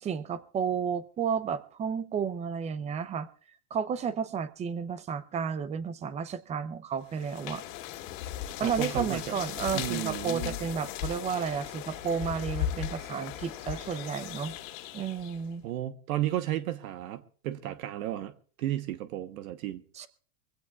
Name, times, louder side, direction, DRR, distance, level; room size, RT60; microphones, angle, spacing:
voice 1, 0.0-3.3 3.7-7.6 8.6-14.5 14.9-15.6 20.0-20.1, right 6 dB, 15° right, 0.5 m, -32 dB
sound 1, 7.1-15.5, left 11 dB, 55° left, 2.1 m, -37 dB
voice 2, 8.6-9.2 9.7-10.6 15.6-18.3 18.6-19.8, right 13 dB, 65° right, 1.2 m, -33 dB
24.0 x 16.0 x 2.4 m
supercardioid pair, 140°, 46 cm